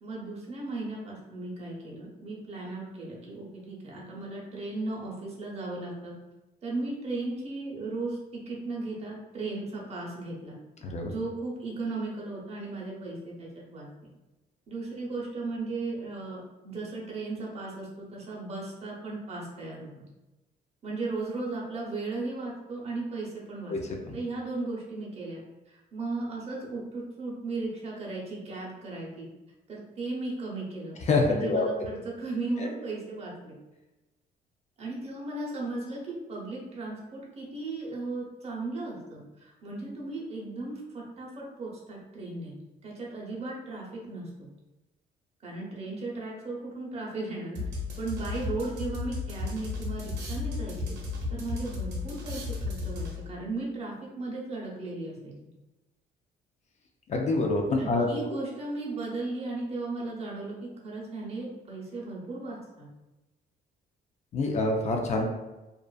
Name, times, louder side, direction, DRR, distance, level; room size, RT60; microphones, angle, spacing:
voice 1, 0.0-6.1 6.6-10.6 11.0-13.9 14.7-20.0 20.8-23.7 24.1-25.4 25.7-29.3 29.7-31.0 31.2-33.5 34.8-42.5 42.8-44.5 45.4-47.6 48.0-50.9 51.3-55.3 57.8-62.9, right 2 dB, 35° right, -4 dB, 0.8 m, -36 dB
voice 2, 31.1-31.7 57.1-58.1 64.3-65.2, left 3 dB, 40° left, 1 dB, 0.4 m, -26 dB
sound 1, 47.6-53.4, left 3 dB, 75° right, 0.6 m, -34 dB
2.4 x 2.4 x 2.2 m, 1.0 s
cardioid pair, 115°, 18 cm